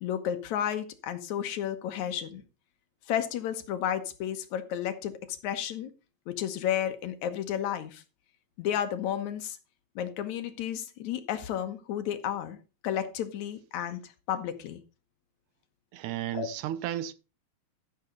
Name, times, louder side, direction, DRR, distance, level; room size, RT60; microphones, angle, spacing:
voice 1, 0.0-2.4 3.1-5.9 6.3-8.0 8.6-9.6 10.0-12.6 12.8-14.8 16.3-16.5, left 10 dB, 75° left, 2.4 m, -32 dB
voice 2, 15.9-17.1, right 12 dB, 90° right, 2.2 m, -33 dB
13.5 x 6.9 x 3.8 m
omnidirectional pair, 3.4 m